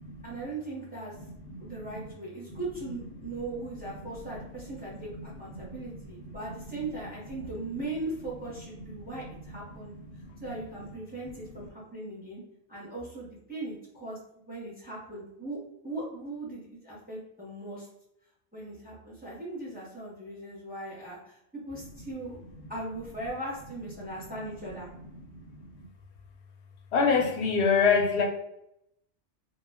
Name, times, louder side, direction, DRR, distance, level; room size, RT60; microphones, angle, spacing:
voice 1, 0.2-1.1 1.6-9.9 10.4-12.4 12.7-17.9 18.5-22.4 22.7-24.9, right 2 dB, 10° right, -5 dB, 0.6 m, -39 dB
voice 2, 26.9-28.2, left 5 dB, 70° left, 0 dB, 0.9 m, -23 dB
2.3 x 2.1 x 3.4 m, 0.79 s
omnidirectional pair, 1.2 m